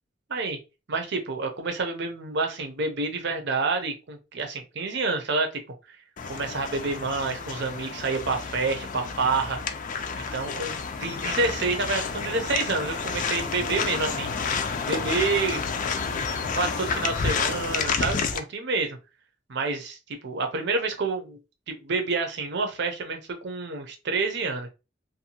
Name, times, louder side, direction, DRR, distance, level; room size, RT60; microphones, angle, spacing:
voice 1, 0.9-5.6 5.9-6.0 6.3-9.6 10.2-10.7 11.0-15.6 16.5-19.0 19.5-21.4 21.7-24.7, right 3 dB, 60° right, 5 dB, 0.7 m, -28 dB
sound 1, 6.2-18.4, left 5 dB, 45° left, 0.4 m, -30 dB
2.7 x 2.2 x 2.8 m, 0.28 s
head